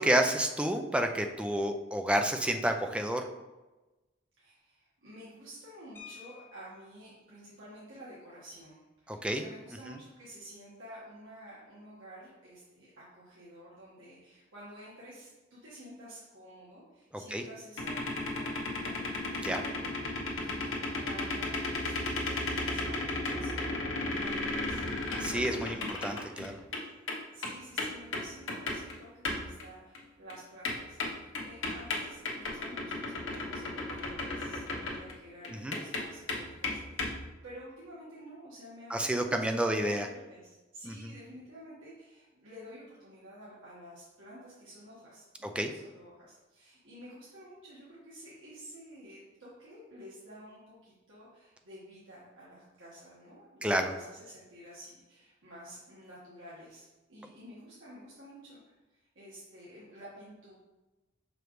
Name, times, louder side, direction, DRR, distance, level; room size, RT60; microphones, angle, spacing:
voice 1, 0.0-3.2 9.1-9.4 9.9-10.0 17.3-17.4 19.4-19.6 25.2-26.6 35.5-35.8 38.9-40.1 40.8-41.1 45.4-45.7 53.6-53.9, right 1 dB, 5° right, 5 dB, 0.4 m, -30 dB
voice 2, 4.4-24.8 25.3-60.5, equal, 85° right, -8 dB, 1.6 m, -51 dB
sound 1, 6.0-7.0 8.5-8.6 8.9-9.1 9.5-9.8, left 9 dB, 10° left, 0.9 m, -52 dB
sound 2, 17.8-26.8 27.1-29.0 29.3-29.7 30.0-30.1 30.3-30.4 30.7-35.2 35.4-37.2, left 2 dB, 85° left, 1.1 m, -34 dB
6.0 x 5.0 x 3.1 m, 1.1 s
head